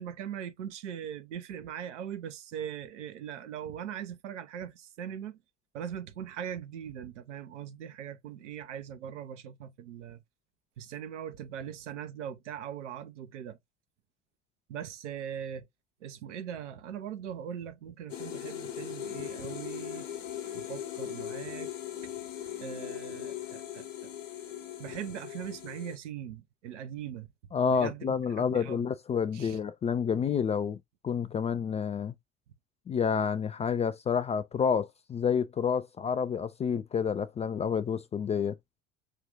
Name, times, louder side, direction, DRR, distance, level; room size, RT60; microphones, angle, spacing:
voice 1, 0.0-5.4 5.7-10.2 10.8-13.6 14.7-15.7 16.0-20.0 20.5-21.7 22.0-22.1 22.6-23.9 24.8-27.3 27.7-28.1 28.5-28.8 29.3-29.6, right 9 dB, 70° right, 0.9 m, -40 dB
sound 1, 18.1-26.0, left 10 dB, 70° left, 1.0 m, -39 dB
voice 2, 27.5-30.8 31.0-32.1 32.9-38.6, left 6 dB, 20° left, 0.3 m, -29 dB
5.6 x 2.4 x 3.5 m
figure-of-eight pair, 65°, 38 cm